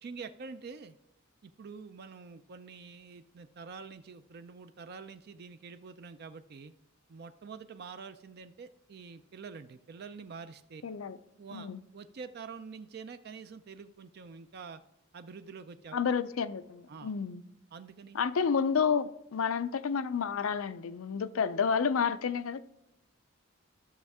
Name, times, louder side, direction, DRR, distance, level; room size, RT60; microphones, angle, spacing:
voice 1, 0.0-1.0 1.4-6.7 7.1-10.8 11.4-14.8 15.1-16.0 16.9-17.1 17.7-18.2, right 5 dB, 50° right, 0.4 m, -46 dB
voice 2, 10.8-11.2 11.5-11.8 15.9-17.4 18.1-22.6, left 6 dB, 90° left, 0.5 m, -30 dB
13.0 x 6.4 x 3.5 m
head